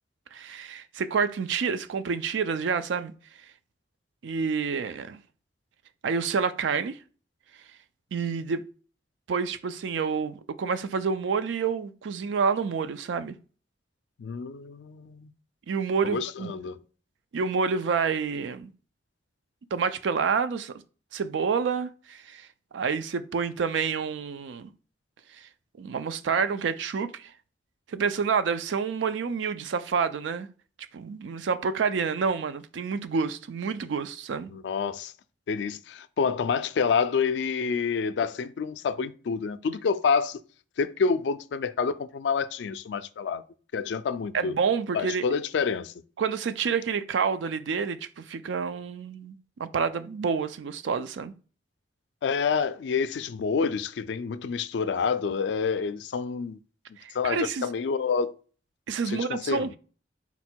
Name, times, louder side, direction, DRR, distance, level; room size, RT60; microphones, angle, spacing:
voice 1, 0.3-3.1 4.2-5.2 6.0-7.0 8.1-8.6 9.3-13.4 15.7-16.5 17.3-18.7 19.7-20.7 21.1-22.5 22.7-24.7 25.8-27.3 27.9-30.5 30.9-34.5 44.3-45.2 46.2-51.3 57.0-57.7 58.9-59.7, right 5 dB, 90° right, 0.4 m, -28 dB
voice 2, 14.2-15.3 16.0-16.8 34.5-35.1 35.5-40.4 40.8-43.4 43.7-44.5 44.9-45.9 52.2-56.6 57.1-58.3 59.1-59.8, left 5 dB, 75° left, 0.3 m, -28 dB
4.1 x 2.2 x 4.3 m
head